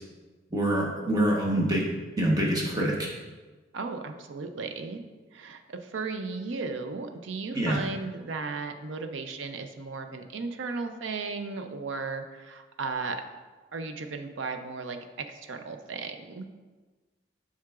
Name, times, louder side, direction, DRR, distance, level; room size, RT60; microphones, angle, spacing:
voice 1, 0.5-1.9 2.2-3.1 7.5-7.8, right 1 dB, 20° right, -3 dB, 1.0 m, -25 dB
voice 2, 3.7-5.0 5.3-13.2 13.7-16.4, right 4 dB, 80° right, 7 dB, 0.5 m, -35 dB
7.5 x 5.7 x 2.4 m, 1.3 s
head